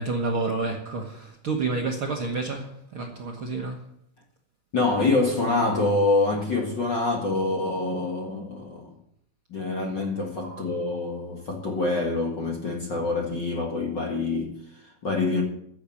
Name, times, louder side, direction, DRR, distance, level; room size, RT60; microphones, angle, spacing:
voice 1, 0.0-3.8 10.4-10.6, right 3 dB, 55° right, 1.6 m, -29 dB
voice 2, 4.7-8.9 9.5-15.4, left 3 dB, 40° left, 1.8 m, -26 dB
15.0 x 7.2 x 8.5 m
omnidirectional pair, 4.0 m